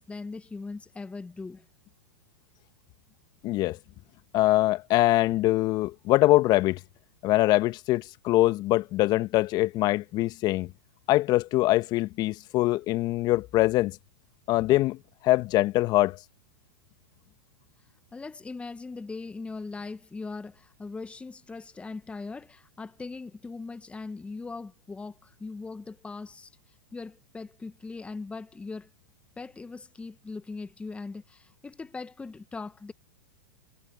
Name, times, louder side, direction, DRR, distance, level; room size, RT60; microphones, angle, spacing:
voice 1, 0.0-1.6 18.1-26.5 26.9-28.9 29.4-32.9, left 3 dB, 10° left, 1.5 m, -40 dB
voice 2, 3.4-3.8 4.3-6.8 7.2-10.7 11.1-14.0 14.5-15.0 15.2-16.2, left 17 dB, 40° left, 1.7 m, -23 dB
hypercardioid pair, 105°, 11 cm